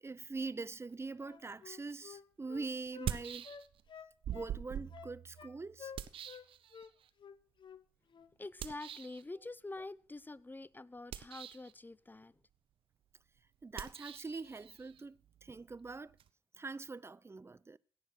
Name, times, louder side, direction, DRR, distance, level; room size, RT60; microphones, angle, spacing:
voice 1, 0.0-3.5 4.3-5.9 13.6-16.2 16.6-17.8, right 3 dB, 25° right, 0.5 m, -43 dB
Wind instrument woodwind instrument, 1.2-3.1 3.4-4.6 4.9-5.5 5.8-6.5 6.7-6.9 7.2-7.8 8.1-8.3, left 7 dB, 55° left, 1.0 m, -51 dB
sound 1, 1.9-2.0 2.9-3.9 4.2-7.1 8.6-9.2 11.0-11.7 13.7-16.3, right 10 dB, 70° right, 0.8 m, -44 dB
voice 2, 8.4-12.3, left 2 dB, 20° left, 0.6 m, -46 dB
16.5 x 6.7 x 6.1 m
supercardioid pair, 45°, 9 cm